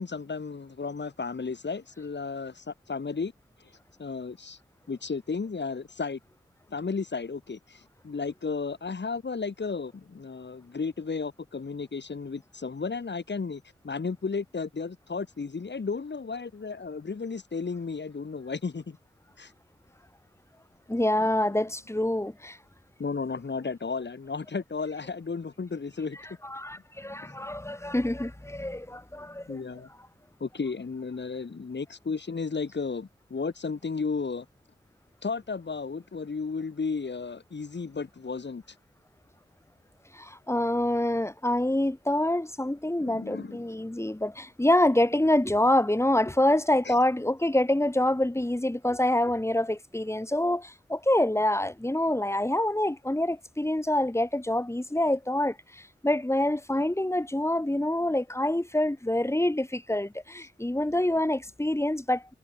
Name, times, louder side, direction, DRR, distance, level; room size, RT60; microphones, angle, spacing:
voice 1, 0.0-3.3 4.0-4.6 4.9-6.2 6.7-19.0 19.4-19.5 21.2-21.3 23.0-26.2 27.2-27.3 29.5-29.9 30.4-34.4 35.2-38.6 43.0-43.8 46.8-46.9, left 4 dB, 70° left, 3.3 m, -34 dB
voice 2, 20.9-22.6 26.4-29.6 40.1-62.3, left 1 dB, 15° left, 1.6 m, -26 dB
cardioid pair, 50°, 19 cm